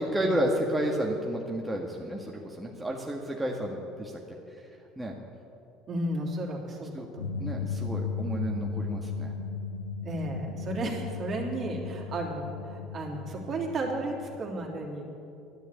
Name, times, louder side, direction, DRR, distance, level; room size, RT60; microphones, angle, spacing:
voice 1, 0.0-4.2 5.0-5.1 6.9-7.1 7.4-9.3, right 1 dB, 10° right, -1 dB, 1.7 m, -31 dB
voice 2, 5.9-7.6 10.0-15.0, right 2 dB, 45° right, -1 dB, 3.2 m, -34 dB
sound 1, 7.2-14.4, left 5 dB, 80° left, 0.7 m, -36 dB
12.0 x 10.5 x 8.6 m, 2.8 s
figure-of-eight pair, 65°, 0 cm